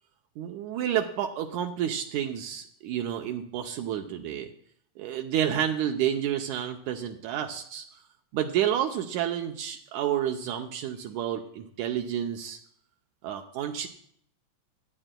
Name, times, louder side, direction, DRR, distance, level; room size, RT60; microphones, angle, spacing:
voice 1, 0.4-4.5 5.0-7.8 8.3-12.6 13.2-13.9, right 10 dB, 80° right, 3 dB, 2.0 m, -30 dB
25.0 x 8.8 x 2.2 m, 0.65 s
omnidirectional pair, 3.4 m